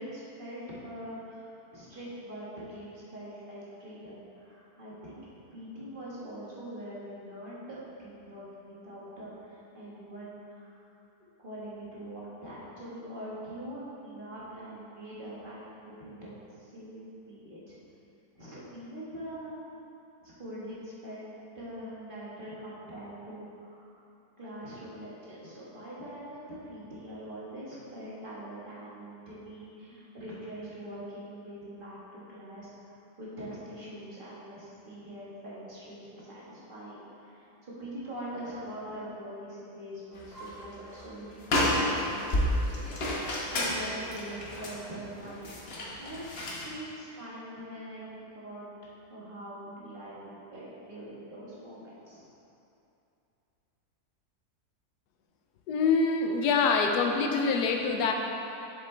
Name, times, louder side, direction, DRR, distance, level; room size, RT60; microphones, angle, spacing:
voice 1, 0.0-5.2 5.5-10.7 11.4-15.7 16.0-16.3 16.6-17.8 18.3-19.6 20.2-21.2 21.5-24.0 24.4-32.7 33.2-41.8 42.1-42.8 43.1-46.2 46.5-48.7 49.1-52.2, right 1 dB, 35° right, -8 dB, 1.6 m, -43 dB
sound 1, 40.2-40.6 41.0-41.1 41.4-46.7, left 1 dB, 45° left, 1.1 m, -30 dB
voice 2, 55.7-58.1, left 4 dB, 90° left, 3 dB, 1.2 m, -25 dB
7.6 x 6.8 x 3.3 m, 2.7 s
omnidirectional pair, 1.7 m